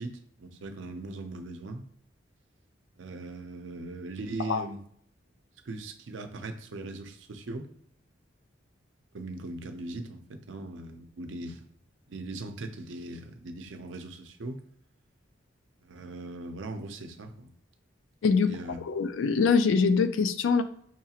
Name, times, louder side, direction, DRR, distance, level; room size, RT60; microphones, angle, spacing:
voice 1, 0.0-1.8 3.0-4.8 5.6-7.7 9.1-11.6 12.1-14.6 15.8-17.5 18.5-18.8, right 2 dB, 80° right, 0.5 m, -39 dB
voice 2, 18.2-18.5 18.9-20.6, left 5 dB, 80° left, 0.3 m, -23 dB
5.9 x 2.4 x 2.9 m
head